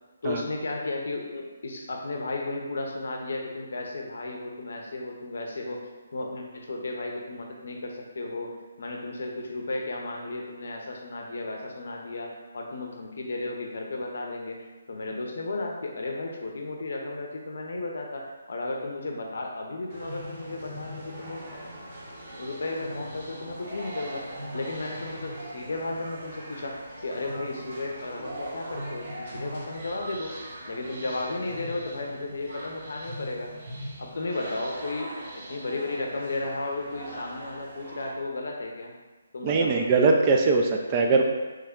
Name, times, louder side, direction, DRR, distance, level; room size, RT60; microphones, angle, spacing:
voice 1, 0.2-5.8 6.1-8.5 8.8-14.6 14.9-21.4 22.4-24.3 24.5-30.3 30.7-33.5 34.0-35.1 35.5-38.9 39.3-39.8, left 2 dB, 70° left, 1 dB, 0.6 m, -34 dB
sound 1, 19.9-38.1, right 1 dB, 45° right, 0.8 m, -40 dB
voice 2, 39.4-41.2, right 4 dB, 25° right, 2 dB, 0.3 m, -21 dB
3.1 x 2.2 x 3.6 m, 1.3 s
hypercardioid pair, 155°, 0 cm